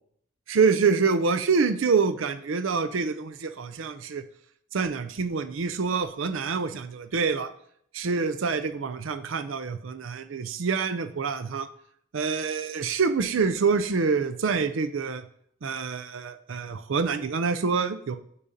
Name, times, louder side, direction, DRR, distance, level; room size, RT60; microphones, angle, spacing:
voice 1, 0.5-4.2 4.7-7.5 7.9-11.7 12.1-15.2 15.6-18.2, right 5 dB, 85° right, 10 dB, 0.5 m, -26 dB
8.5 x 2.8 x 5.1 m, 0.66 s
head